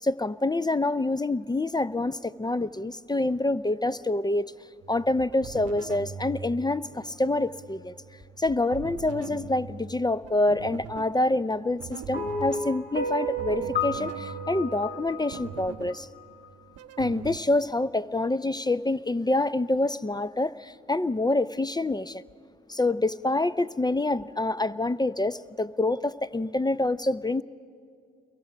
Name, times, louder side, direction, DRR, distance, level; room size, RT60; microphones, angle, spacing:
voice 1, 0.0-4.5 4.9-7.9 8.4-16.1 17.0-22.2 22.7-27.4, left 2 dB, 15° left, 0.5 m, -26 dB
sound 1, 4.8-17.4, right 7 dB, 55° right, 0.9 m, -43 dB
sound 2, 12.1-16.5, left 1 dB, 35° left, 2.3 m, -32 dB
28.5 x 23.0 x 5.1 m
hypercardioid pair, 45°, 30 cm